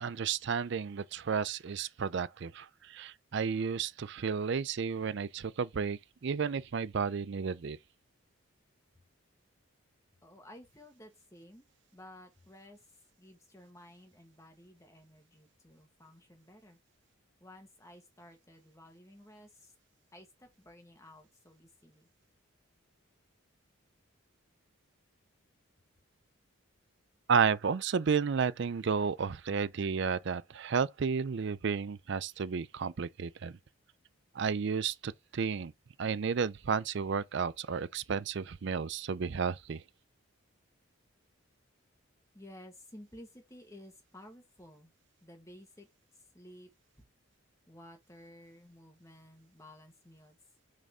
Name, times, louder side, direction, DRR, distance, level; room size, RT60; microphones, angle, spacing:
voice 1, 0.0-7.8 27.3-33.5 34.3-35.7 36.0-39.8, right 6 dB, 55° right, 0.4 m, -32 dB
voice 2, 10.2-12.8 13.2-16.8 17.4-19.7 20.1-22.1 42.3-44.9 45.2-45.9 46.1-46.7 47.7-50.4, left 1 dB, 15° left, 1.5 m, -54 dB
6.3 x 4.1 x 3.6 m
head